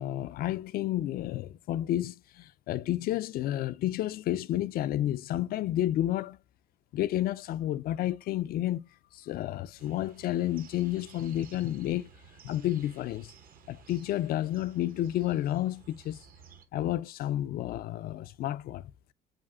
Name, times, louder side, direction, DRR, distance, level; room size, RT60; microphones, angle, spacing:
voice 1, 0.0-6.4 6.9-8.9 9.1-12.1 12.4-13.3 13.7-16.2 16.7-18.9, left 13 dB, 60° left, 0.4 m, -31 dB
sound 1, 9.8-16.7, right 6 dB, 60° right, 0.9 m, -55 dB
7.5 x 2.6 x 2.4 m
cardioid pair, 110°, 17 cm